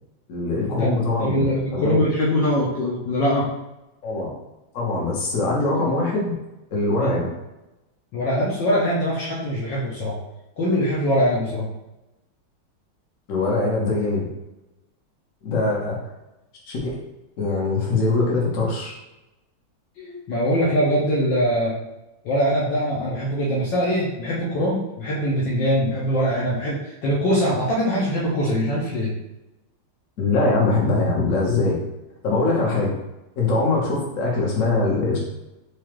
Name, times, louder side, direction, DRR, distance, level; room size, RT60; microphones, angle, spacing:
voice 1, 0.3-2.0 4.0-4.3 4.7-6.3 6.7-7.3 13.3-14.2 15.4-16.0 16.7-17.0 17.4-18.9 30.2-31.8 32.2-32.9 33.4-35.2, left 3 dB, 50° left, -3 dB, 1.2 m, -22 dB
voice 2, 1.2-3.5 7.0-7.1 8.1-10.2 10.6-11.7 20.0-21.7 22.2-29.1, equal, 65° left, -5 dB, 1.4 m, -22 dB
4.9 x 2.4 x 3.0 m, 0.98 s
omnidirectional pair, 2.3 m